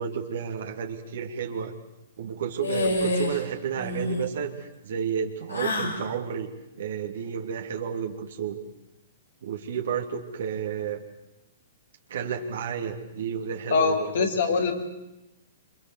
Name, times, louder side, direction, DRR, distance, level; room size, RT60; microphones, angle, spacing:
voice 1, 0.0-1.7 2.2-6.5 6.8-8.6 9.4-11.0 12.1-14.3, right 7 dB, 65° right, 2 dB, 3.0 m, -31 dB
sound 1, 2.6-3.4 3.7-4.3 5.5-6.0, left 2 dB, 85° left, 6.8 m, -27 dB
voice 2, 13.7-14.7, left 5 dB, 65° left, 2 dB, 5.8 m, -23 dB
27.5 x 26.0 x 8.0 m, 0.94 s
figure-of-eight pair, 115°, 0 cm